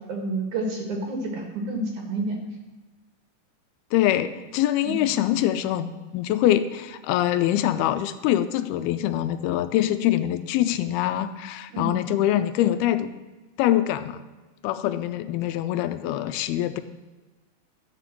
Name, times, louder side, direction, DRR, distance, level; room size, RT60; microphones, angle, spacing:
voice 1, 0.1-2.4 4.8-5.0 11.7-11.9, right 2 dB, 60° right, 2 dB, 2.7 m, -29 dB
voice 2, 3.9-13.1 13.6-14.2 14.6-16.8, left 12 dB, 85° left, 11 dB, 2.4 m, -24 dB
13.0 x 4.9 x 7.5 m, 1.2 s
omnidirectional pair, 4.5 m